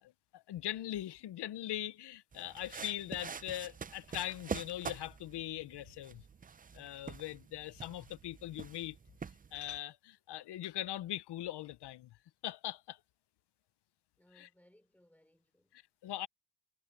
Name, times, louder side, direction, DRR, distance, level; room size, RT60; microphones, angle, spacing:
voice 1, 0.0-6.2 6.7-9.0 9.5-12.2 12.4-13.0 14.4-14.5 15.7-16.3, left 13 dB, 80° left, 0.9 m, -41 dB
sound 1, 2.3-9.8, right 6 dB, 20° right, 0.4 m, -46 dB
voice 2, 14.2-15.8, left 1 dB, 5° left, 4.2 m, -67 dB
cardioid pair, 120°, 40 cm